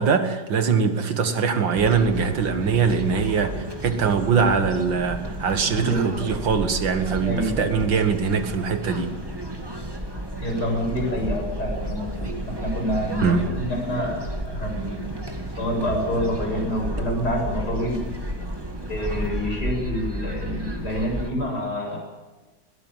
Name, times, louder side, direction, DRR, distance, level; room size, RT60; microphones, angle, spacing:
voice 1, 0.0-9.1 13.2-13.4, right 5 dB, 80° right, 8 dB, 2.4 m, -22 dB
sound 1, 1.7-21.3, right 1 dB, 10° right, 2.2 m, -32 dB
voice 2, 5.8-6.3 7.2-7.6 10.4-17.9 18.9-22.0, equal, 60° left, 0 dB, 7.4 m, -27 dB
21.0 x 17.5 x 7.6 m, 1.2 s
omnidirectional pair, 2.0 m